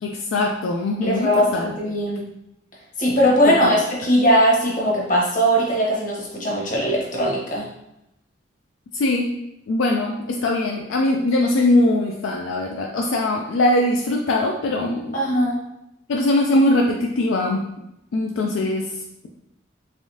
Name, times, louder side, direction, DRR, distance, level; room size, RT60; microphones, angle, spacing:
voice 1, 0.0-1.7 3.6-3.8 8.9-9.4 9.7-15.2 16.1-17.6 18.1-18.9, left 1 dB, 70° left, 1 dB, 0.4 m, -21 dB
voice 2, 1.0-2.3 3.0-7.7 15.1-15.6, equal, 40° left, -3 dB, 1.0 m, -20 dB
3.5 x 3.3 x 2.7 m, 0.83 s
head